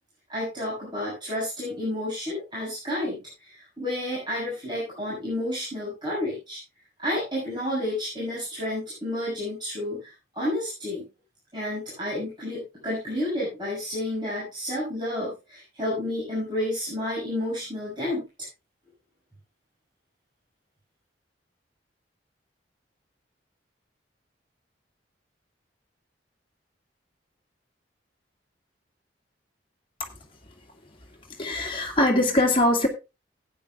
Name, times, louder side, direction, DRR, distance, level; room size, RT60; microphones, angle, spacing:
voice 1, 0.3-6.6 7.0-11.1 11.5-18.3, left 1 dB, 25° right, -7 dB, 6.9 m, -30 dB
voice 2, 31.4-32.9, left 1 dB, 30° left, 1 dB, 2.3 m, -22 dB
17.5 x 9.7 x 2.4 m, 0.27 s
head